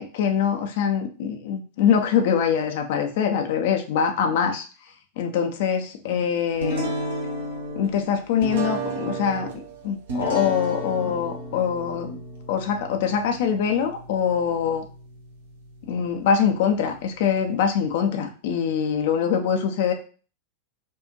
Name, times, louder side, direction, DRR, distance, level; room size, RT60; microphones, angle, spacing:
voice 1, 0.0-4.7 5.2-6.9 7.8-12.2 12.5-14.9 15.8-19.9, left 7 dB, 50° left, 5 dB, 0.6 m, -24 dB
sound 1, 6.6-18.1, right 1 dB, 60° right, 0.9 m, -34 dB
4.4 x 2.5 x 3.0 m, 0.38 s
figure-of-eight pair, 90°, 0 cm